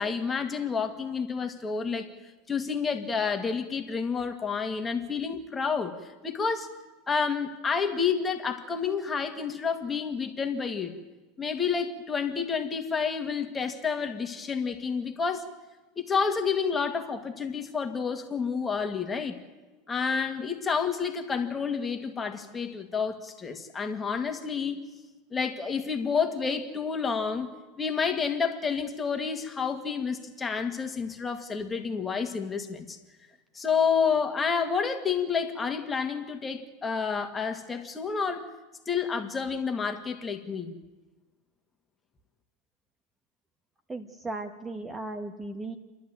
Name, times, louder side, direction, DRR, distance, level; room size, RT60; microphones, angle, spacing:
voice 1, 0.0-2.1 2.5-6.0 6.2-6.7 7.1-11.0 11.4-15.5 16.0-19.4 19.9-24.8 25.3-27.5 27.8-33.0 33.5-38.5 38.9-40.7, left 5 dB, 20° left, 6 dB, 2.1 m, -29 dB
voice 2, 43.9-45.8, right 2 dB, 15° right, 8 dB, 1.5 m, -36 dB
29.0 x 11.5 x 9.1 m, 1.2 s
supercardioid pair, 110°, 0 cm